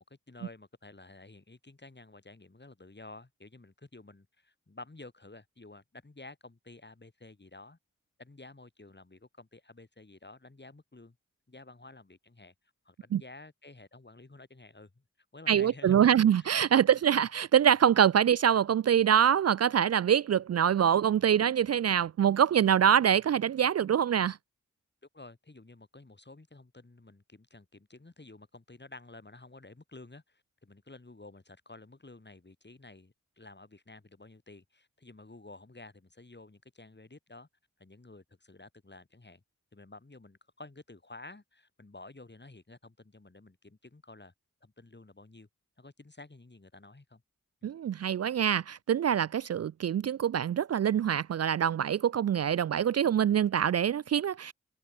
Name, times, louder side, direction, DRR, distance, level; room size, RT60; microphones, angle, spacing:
voice 1, 0.0-7.8 8.2-11.2 11.5-12.5 12.8-15.0 15.3-16.9 25.1-37.5 37.8-39.4 39.7-44.3 44.6-45.5 45.8-47.2 47.6-47.7, left 2 dB, 35° left, 5.9 m, -52 dB
voice 2, 15.5-24.4 47.6-54.5, right 9 dB, 55° right, 0.4 m, -25 dB
open air
cardioid pair, 40°, 31 cm